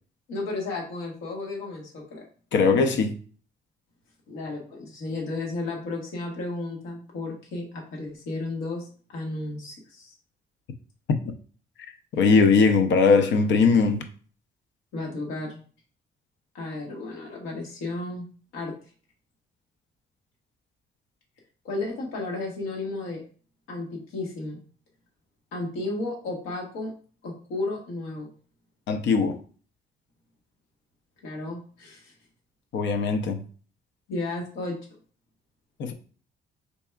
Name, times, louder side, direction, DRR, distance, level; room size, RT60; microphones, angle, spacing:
voice 1, 0.3-2.2 4.3-10.1 14.9-15.6 16.5-18.2 18.5-18.7 21.6-23.2 23.7-24.6 25.5-26.9 27.2-28.3 31.2-32.1 34.1-34.8, left 2 dB, 90° left, -1 dB, 1.4 m, -33 dB
voice 2, 2.5-3.1 12.2-14.0 28.9-29.4 32.7-33.4 35.8-35.9, left 4 dB, 65° left, 7 dB, 0.6 m, -20 dB
4.0 x 3.3 x 2.3 m, 0.41 s
cardioid pair, 90°, 20 cm